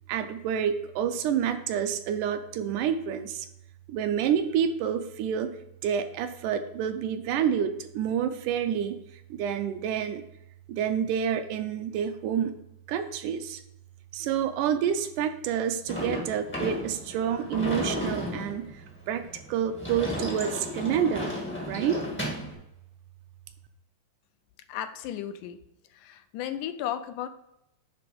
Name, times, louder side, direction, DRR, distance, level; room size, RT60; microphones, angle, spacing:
voice 1, 0.1-3.5 3.9-5.5 5.8-9.0 9.3-10.2 10.7-12.5 12.9-13.6 14.1-18.7 19.1-19.2 19.5-21.3 21.7-22.0, right 8 dB, 80° right, 8 dB, 2.0 m, -28 dB
Sliding door / Slam, 15.9-22.5, left 1 dB, 15° left, 0.4 m, -34 dB
voice 2, 24.7-25.6 25.9-27.3, left 11 dB, 80° left, 10 dB, 2.0 m, -34 dB
9.9 x 3.5 x 5.1 m, 0.85 s
omnidirectional pair, 3.7 m